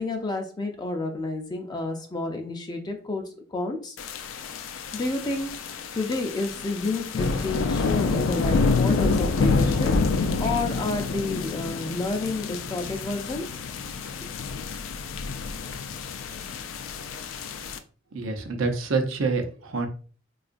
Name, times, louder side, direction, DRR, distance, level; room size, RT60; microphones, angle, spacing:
voice 1, 0.0-4.0 4.9-10.0 10.4-13.5, left 2 dB, 20° left, 4 dB, 0.4 m, -30 dB
sound 1, 4.0-17.8, left 4 dB, 90° left, 0.4 m, -27 dB
voice 2, 18.1-19.9, right 3 dB, 90° right, 5 dB, 0.6 m, -27 dB
3.7 x 2.3 x 2.4 m, 0.40 s
head